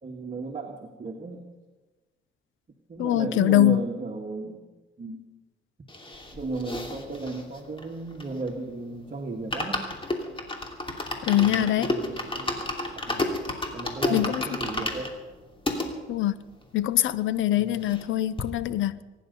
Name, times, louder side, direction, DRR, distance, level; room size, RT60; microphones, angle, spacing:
voice 1, 0.0-1.4 2.9-4.6 5.0-5.2 6.3-9.8 11.3-12.7 13.1-13.4 13.7-15.2 17.5-17.9, right 3 dB, 40° right, 1 dB, 1.8 m, -35 dB
voice 2, 3.0-3.8 11.2-11.9 14.1-14.4 16.1-16.3 16.7-19.0, left 13 dB, 75° left, 16 dB, 0.7 m, -23 dB
sound 1, 5.9-8.7 9.0-9.1 9.3-15.9 16.5-16.6 16.7-16.8 17.1-18.1 18.4-18.5, left 2 dB, 25° left, 2.8 m, -32 dB
24.0 x 10.5 x 5.4 m, 1.2 s
cardioid pair, 90°, 20 cm